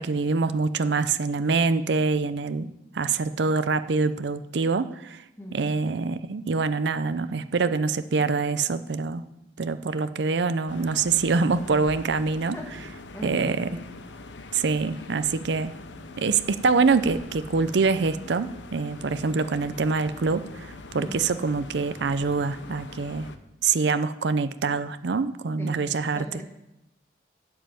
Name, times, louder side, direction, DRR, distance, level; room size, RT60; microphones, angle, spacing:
voice 1, 0.0-5.2 5.5-9.2 9.6-12.6 13.2-13.7 14.5-15.7 16.2-23.3 23.6-26.2, right 4 dB, 70° right, 12 dB, 0.5 m, -25 dB
voice 2, 5.4-5.7 12.4-13.9 21.0-21.2 25.6-25.9 26.1-26.4, equal, 15° left, 1 dB, 1.6 m, -39 dB
sound 1, 10.7-23.4, left 3 dB, 80° left, 0.9 m, -43 dB
11.5 x 5.4 x 8.9 m, 0.89 s
head